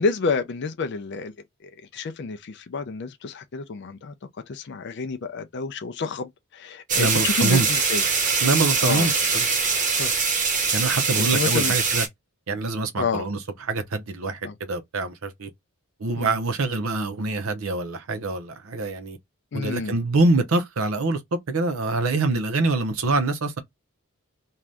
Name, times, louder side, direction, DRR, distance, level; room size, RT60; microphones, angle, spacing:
voice 1, 0.0-1.3 1.9-4.1 4.5-6.3 6.6-8.0 8.8-9.1 10.0-10.1 11.2-11.7 13.0-13.2 14.4-14.5 16.2-16.3 19.5-19.9, left 4 dB, 50° left, 0.4 m, -28 dB
sound 1, 6.9-12.1, right 5 dB, 35° right, 0.8 m, -23 dB
voice 2, 7.0-7.7 8.4-9.5 10.7-12.1 12.5-15.5 16.0-19.2 19.5-21.2 21.5-23.6, right 3 dB, 70° right, 0.7 m, -25 dB
2.6 x 2.3 x 3.2 m
head